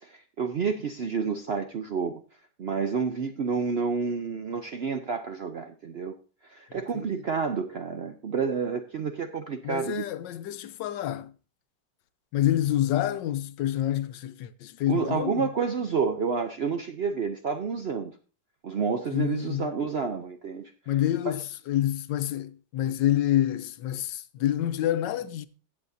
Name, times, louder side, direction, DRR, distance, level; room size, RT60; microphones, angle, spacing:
voice 1, 0.0-2.2 2.6-6.1 6.4-10.0 14.9-18.1 18.6-20.7 21.3-21.4, right 5 dB, 65° right, 0.6 m, -29 dB
voice 2, 9.6-11.3 12.3-15.5 19.1-19.7 20.9-25.5, left 12 dB, 90° left, 1.3 m, -27 dB
16.5 x 7.3 x 2.6 m
omnidirectional pair, 1.9 m